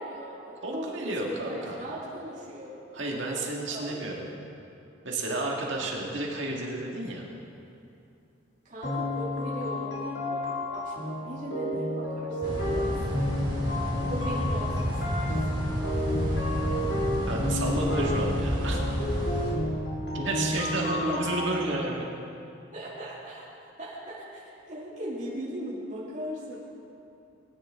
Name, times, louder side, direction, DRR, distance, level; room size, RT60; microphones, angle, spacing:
voice 1, 0.0-3.4 3.7-4.3 5.7-5.9 8.6-13.2 14.1-15.6 16.0-16.6 19.4-19.5 21.0-21.3 22.7-26.6, equal, 35° right, -9 dB, 2.8 m, -39 dB
voice 2, 0.6-1.8 2.9-4.2 5.0-7.3 17.3-18.8 19.2-19.3 20.1-22.0, right 2 dB, 65° right, -2 dB, 1.9 m, -31 dB
sound 1, 8.8-21.6, left 1 dB, 55° left, 2.6 m, -31 dB
sound 2, 12.4-19.5, equal, 20° right, 3.0 m, -30 dB
19.0 x 9.9 x 3.7 m, 2.6 s
head